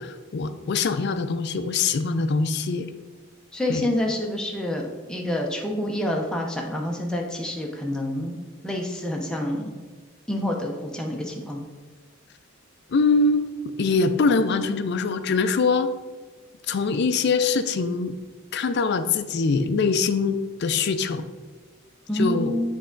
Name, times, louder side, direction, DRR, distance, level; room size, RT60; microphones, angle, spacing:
voice 1, 0.0-2.9 3.7-3.9 12.9-15.9 16.7-18.2 18.5-21.2 22.1-22.6, left 4 dB, 50° left, 10 dB, 0.4 m, -23 dB
voice 2, 3.5-8.4 8.6-9.8 10.3-11.7 22.1-22.6, left 1 dB, 5° left, -1 dB, 0.6 m, -27 dB
7.7 x 3.5 x 3.8 m, 1.3 s
head